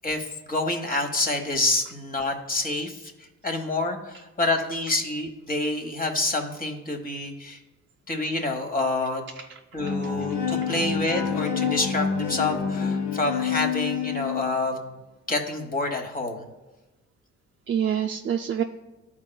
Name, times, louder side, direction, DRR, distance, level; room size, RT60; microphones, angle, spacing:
voice 1, 0.0-3.1 3.4-7.6 8.1-9.2 9.7-14.8 15.3-16.5, left 2 dB, 30° left, 4 dB, 1.2 m, -27 dB
voice 2, 9.4-9.9 17.7-18.6, right 9 dB, 40° right, 2 dB, 0.4 m, -27 dB
Bowed string instrument, 9.8-14.7, left 7 dB, 80° left, 0.9 m, -28 dB
12.0 x 4.4 x 2.3 m, 1.1 s
cardioid pair, 90°, 30 cm